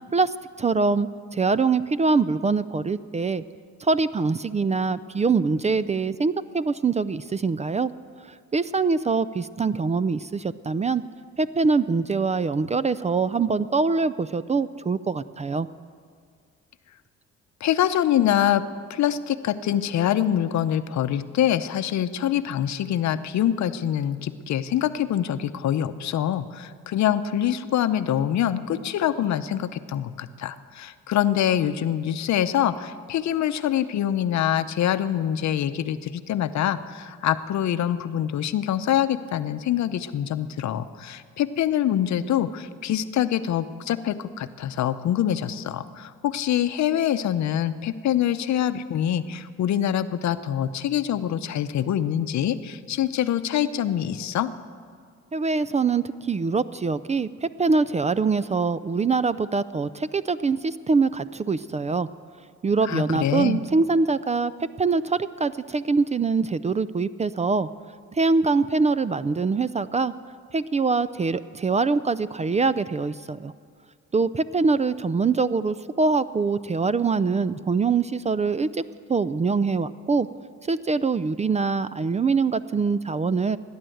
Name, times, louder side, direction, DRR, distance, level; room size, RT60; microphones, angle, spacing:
voice 1, 0.1-3.4 3.8-7.9 8.5-11.0 11.4-15.7 55.3-62.1 62.6-64.5 64.8-67.7 68.1-70.1 70.5-73.5 74.1-78.8 79.1-80.3 80.7-83.6, right 4 dB, 25° right, 16 dB, 0.4 m, -24 dB
voice 2, 17.6-18.6 18.9-54.5 62.8-63.6, left 10 dB, 65° left, 12 dB, 0.7 m, -25 dB
17.0 x 10.5 x 7.8 m, 2.1 s
cardioid pair, 90°, 30 cm